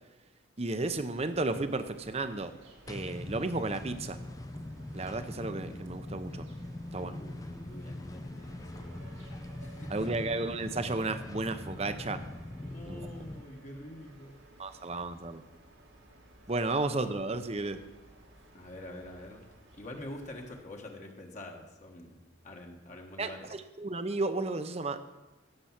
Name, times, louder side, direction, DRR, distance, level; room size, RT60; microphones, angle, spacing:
voice 1, 0.6-2.5 2.9-4.2 4.9-6.4 6.9-7.2 9.9-12.2 12.9-13.0 14.6-15.4 16.5-17.8 23.2-25.0, right 2 dB, 30° right, 10 dB, 0.8 m, -33 dB
sound 1, 0.8-20.6, right 1 dB, 85° right, 2.3 m, -56 dB
sound 2, 2.9-13.4, left 1 dB, 20° left, 0.5 m, -42 dB
voice 2, 6.9-9.3 9.6-10.1 12.6-14.9 18.5-19.5 19.8-23.5, left 1 dB, 40° left, 1 dB, 1.4 m, -46 dB
16.5 x 6.9 x 6.0 m, 1.1 s
head